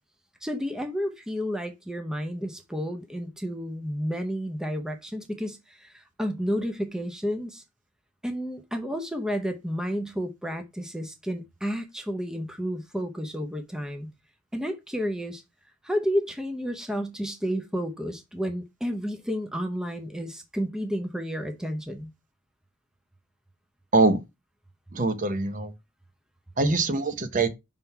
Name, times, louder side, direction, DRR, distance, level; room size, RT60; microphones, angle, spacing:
voice 1, 0.4-7.6 8.2-14.1 14.5-15.4 15.8-22.1, equal, 5° right, 0.6 m, -31 dB
voice 2, 24.9-25.7 26.6-27.5, right 3 dB, 40° right, 0.7 m, -23 dB
5.6 x 3.7 x 4.5 m
head